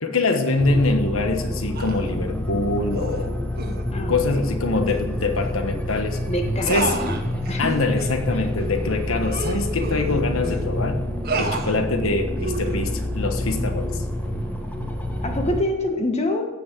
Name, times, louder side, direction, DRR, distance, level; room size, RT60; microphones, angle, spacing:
voice 1, 0.0-3.4 4.1-6.2 6.7-6.9 7.6-11.0 11.4-14.0, left 3 dB, 90° left, 5 dB, 1.4 m, -24 dB
sound 1, 0.6-15.6, left 1 dB, 10° left, 1.4 m, -28 dB
sound 2, 1.7-2.1 2.9-3.2 3.6-3.8 4.8-5.0 5.4-5.5 5.9-6.0 6.7-7.6 8.0-8.2 8.6-8.7 9.2-10.6 11.2-11.8 12.4-12.8, right 3 dB, 50° right, 1.5 m, -30 dB
voice 2, 3.9-4.5 6.3-7.2 7.5-7.7 8.3-8.4 15.2-16.5, left 1 dB, 30° left, 3 dB, 1.7 m, -26 dB
16.0 x 6.4 x 7.7 m, 1.2 s
head